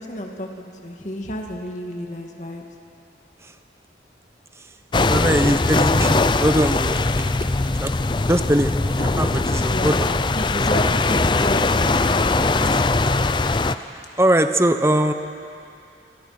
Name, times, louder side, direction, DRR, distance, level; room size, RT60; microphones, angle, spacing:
voice 1, 0.0-2.6 9.7-10.0 10.4-12.4, equal, 40° left, 2 dB, 2.2 m, -31 dB
sound 1, 4.9-13.7, left 3 dB, 25° left, 0.5 m, -20 dB
voice 2, 5.0-7.5 7.8-8.0 8.3-8.7 9.0-10.1 12.7-13.0 13.9-15.1, right 1 dB, 15° right, 8 dB, 0.9 m, -21 dB
28.5 x 22.5 x 6.0 m, 2.6 s
head